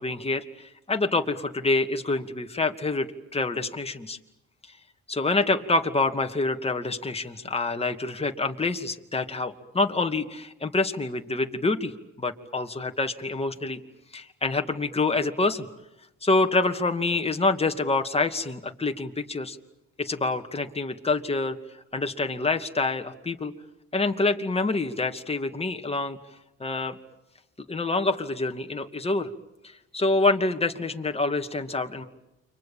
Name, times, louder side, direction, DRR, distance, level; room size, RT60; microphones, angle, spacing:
voice 1, 0.0-4.2 4.7-4.8 5.1-11.9 12.2-13.8 14.1-15.7 16.2-19.6 20.0-21.6 21.9-23.5 23.9-26.2 26.6-26.9 27.6-29.3 29.6-32.0, left 3 dB, 20° left, 5 dB, 2.5 m, -26 dB
29.5 x 25.5 x 7.5 m, 0.91 s
cardioid pair, 90°, 30 cm